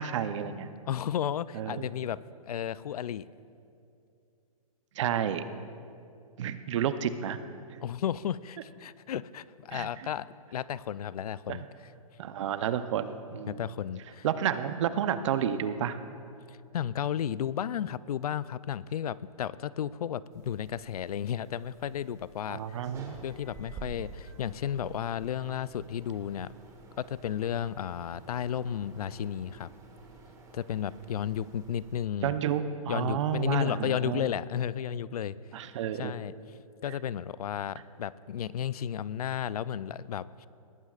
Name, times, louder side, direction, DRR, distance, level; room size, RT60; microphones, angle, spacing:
voice 1, 0.0-0.7 1.5-1.9 5.0-5.4 6.4-7.4 9.7-9.9 11.5-11.6 12.2-13.6 14.2-16.0 22.5-23.2 32.2-34.3 35.5-36.2, right 9 dB, 55° right, 11 dB, 0.7 m, -30 dB
voice 2, 0.9-3.3 7.8-11.9 13.5-14.3 16.5-22.8 23.2-26.5 27.0-29.7 30.5-32.4 32.9-35.4 35.9-36.3 36.8-40.5, left 9 dB, 85° left, 18 dB, 0.4 m, -33 dB
sound 1, 20.3-32.1, right 3 dB, 15° right, 1.4 m, -50 dB
19.5 x 15.0 x 2.4 m, 2.5 s
hypercardioid pair, 145°, 19 cm